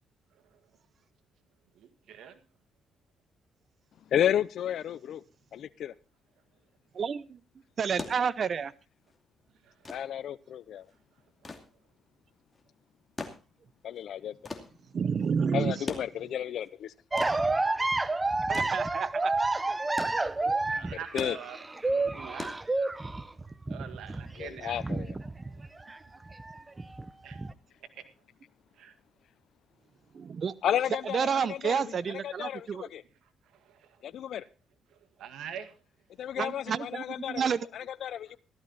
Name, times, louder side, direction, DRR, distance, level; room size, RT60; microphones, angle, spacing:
voice 1, 1.8-2.4 9.7-9.8 11.4-11.5 20.7-22.5 23.7-24.8 27.2-27.4 28.0-28.1 28.8-28.9 33.7-34.0 35.2-35.7, right 8 dB, 75° right, 1.9 m, -44 dB
voice 2, 4.1-5.2 5.5-5.9 9.9-10.9 13.8-14.4 15.5-16.9 20.9-21.4 24.3-25.2 30.6-33.0 34.0-34.4 36.2-38.4, left 10 dB, 70° left, 0.7 m, -32 dB
voice 3, 6.9-7.4 7.8-8.7 14.9-15.8 18.5-19.3 30.1-30.5 31.1-32.8 36.4-37.7, right 6 dB, 50° right, 0.8 m, -30 dB
sound 1, 7.7-23.3 24.5-24.6, left 3 dB, 25° left, 2.6 m, -44 dB
sound 2, 17.1-26.0 26.3-27.5, right 2 dB, 20° right, 0.8 m, -30 dB
15.5 x 13.0 x 4.1 m
cardioid pair, 90°, 0 cm